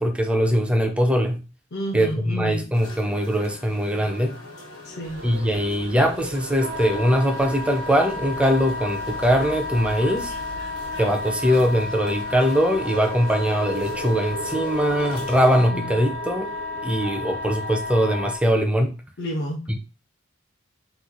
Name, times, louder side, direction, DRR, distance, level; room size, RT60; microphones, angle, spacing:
voice 1, 0.0-1.4 1.9-4.4 5.2-10.3 11.0-16.5 16.8-18.9, equal, 5° right, 4 dB, 0.4 m, -21 dB
voice 2, 1.7-2.7 4.8-5.2 15.6-15.9 19.2-19.8, equal, 55° left, 0 dB, 0.5 m, -31 dB
sound 1, 2.7-15.7, left 2 dB, 80° left, 1.2 m, -43 dB
sound 2, 5.0-18.4, right 3 dB, 75° right, 0.4 m, -38 dB
Wind instrument woodwind instrument, 6.6-18.4, left 3 dB, 90° right, 1.0 m, -32 dB
3.0 x 2.2 x 3.7 m, 0.32 s
head